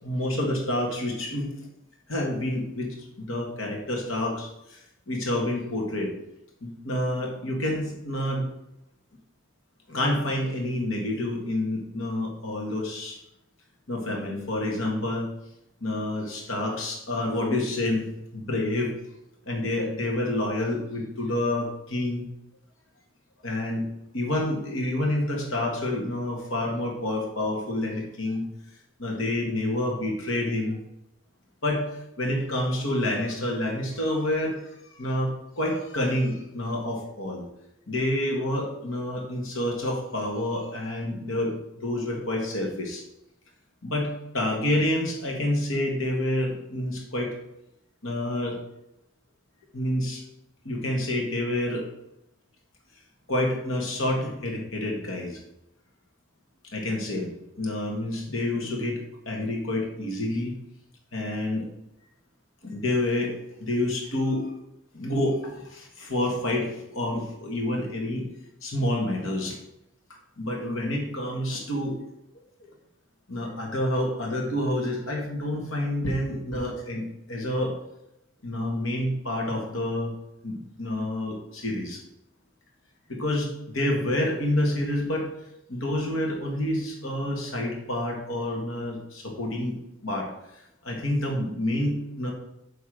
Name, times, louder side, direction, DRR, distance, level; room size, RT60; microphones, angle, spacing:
voice 1, 0.0-1.5 2.1-6.1 6.6-8.5 9.9-13.2 13.9-15.3 15.8-18.9 19.5-22.2 23.4-23.8 24.1-28.4 29.0-30.8 31.6-31.8 32.2-34.6 34.9-37.4 37.9-41.5 41.8-43.0 43.8-47.3 48.0-48.6 49.7-50.2 50.6-51.8 53.3-55.4 56.7-59.0 59.3-60.5 61.1-61.6 62.6-64.5 64.9-68.3 68.6-69.6 70.4-72.0 73.3-77.7 78.4-80.1 80.4-82.0 83.1-85.3 85.7-89.8 90.0-92.3, left 1 dB, 80° left, 0 dB, 2.0 m, -28 dB
8.1 x 3.6 x 6.5 m, 0.85 s
head